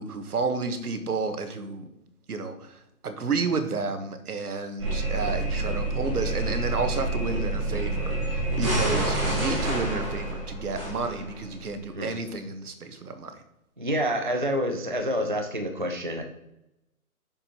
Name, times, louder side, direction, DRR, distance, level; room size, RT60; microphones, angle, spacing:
voice 1, 0.0-1.8 2.3-13.4, right 4 dB, 80° right, 8 dB, 1.4 m, -31 dB
sound 1, 4.8-11.6, right 2 dB, 20° right, 1.7 m, -28 dB
voice 2, 13.8-16.2, equal, 35° right, 5 dB, 0.4 m, -28 dB
7.1 x 6.6 x 3.0 m, 0.89 s
hypercardioid pair, 175°, 44 cm